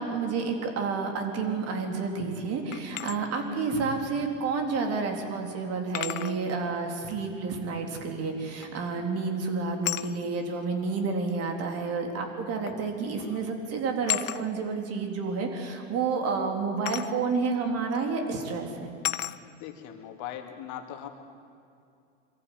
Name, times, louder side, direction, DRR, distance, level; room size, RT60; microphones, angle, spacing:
voice 1, 0.0-18.9, right 4 dB, 40° right, 3 dB, 3.7 m, -30 dB
sound 1, 2.7-3.2 4.7-4.8 5.9-6.4 8.6-8.9 9.8-10.1 11.3-11.4 12.7-12.9 13.2-13.4 14.1-14.4 16.9-17.1 17.9-18.1 19.0-19.4, left 13 dB, 85° left, 0.9 m, -32 dB
voice 2, 19.6-21.1, left 10 dB, 50° left, 5 dB, 2.6 m, -40 dB
23.5 x 14.5 x 9.5 m, 2.5 s
hypercardioid pair, 115°, 39 cm